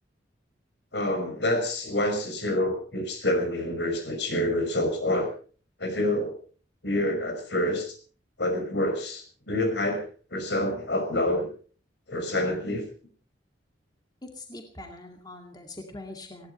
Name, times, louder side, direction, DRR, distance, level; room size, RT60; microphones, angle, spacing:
voice 1, 0.9-5.3 5.8-6.4 6.8-7.9 8.4-10.0 10.3-11.5 12.1-12.8, left 1 dB, 70° left, 6 dB, 5.6 m, -27 dB
voice 2, 14.2-16.5, left 2 dB, 20° left, 3 dB, 2.2 m, -42 dB
20.0 x 16.5 x 4.4 m, 0.41 s
head